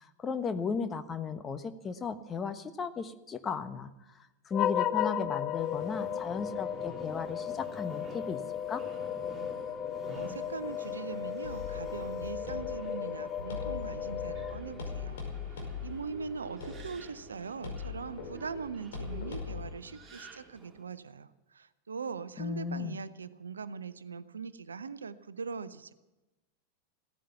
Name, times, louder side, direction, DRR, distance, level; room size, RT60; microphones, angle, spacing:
voice 1, 0.0-3.9 4.2-8.4 8.7-8.8 22.4-23.0, left 5 dB, 20° left, 9 dB, 1.2 m, -35 dB
sound 1, 4.5-15.1, left 9 dB, 35° left, 0.8 m, -35 dB
Subway metro underground, 5.6-20.8, right 2 dB, 15° right, 3.3 m, -50 dB
voice 2, 10.1-15.2 15.5-25.9, right 5 dB, 70° right, 15 dB, 0.7 m, -41 dB
sound 2, 11.4-19.7, left 5 dB, 60° left, 5.2 m, -42 dB
16.5 x 14.0 x 5.8 m, 1.0 s
figure-of-eight pair, 90°, 0 cm